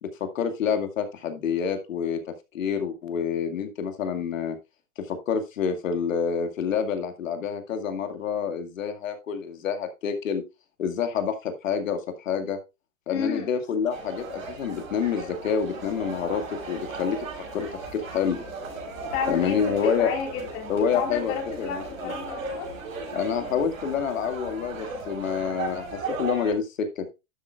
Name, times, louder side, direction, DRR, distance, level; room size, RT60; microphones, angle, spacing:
voice 1, 0.0-4.6 5.0-10.4 10.8-12.6 13.1-16.4 16.7-17.2 17.5-18.4 19.3-20.1 20.7-22.1 23.1-27.1, left 7 dB, 75° left, 2.2 m, -28 dB
voice 2, 13.1-13.5 19.1-22.7, left 6 dB, 40° left, 3.9 m, -32 dB
sound 1, 13.9-26.5, right 3 dB, 85° right, 5.5 m, -36 dB
12.0 x 7.9 x 2.4 m
hypercardioid pair, 130°, 39 cm